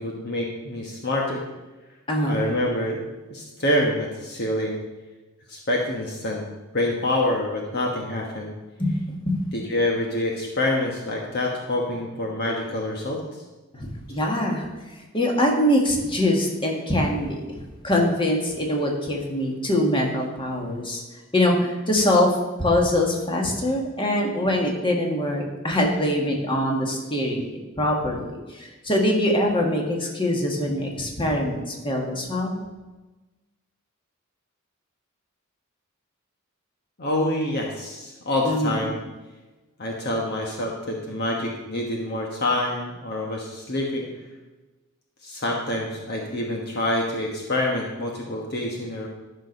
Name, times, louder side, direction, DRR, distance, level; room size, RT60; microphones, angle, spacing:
voice 1, 0.0-1.4 2.2-3.0 3.3-4.8 5.5-6.5 6.7-8.5 9.5-13.4 37.0-39.0 39.8-44.1 45.2-49.1, left 1 dB, 50° left, -1 dB, 1.3 m, -26 dB
voice 2, 2.1-2.4 8.8-9.0 9.3-9.4 13.7-14.7 15.1-21.0 21.3-22.3 22.6-27.4 27.8-32.6 38.4-38.8, left 1 dB, 25° left, 0 dB, 1.9 m, -23 dB
12.0 x 6.3 x 5.3 m, 1.2 s
head